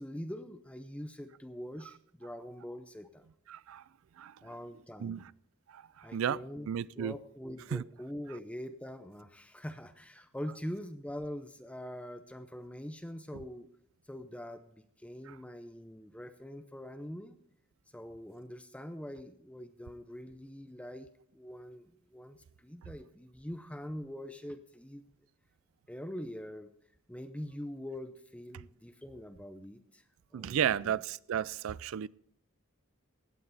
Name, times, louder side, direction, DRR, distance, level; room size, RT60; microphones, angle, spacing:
voice 1, 0.0-3.2 4.4-5.2 6.0-6.7 6.9-13.7 14.1-17.3 17.9-25.1 25.9-26.7 27.1-30.0 30.3-31.0, equal, 5° left, 0.6 m, -44 dB
voice 2, 3.5-3.8 4.2-4.3 5.0-5.3 5.7-5.8 6.1-6.4 6.7-7.2 7.7-7.8 30.3-32.1, right 9 dB, 70° right, 0.3 m, -33 dB
16.5 x 9.2 x 4.1 m
head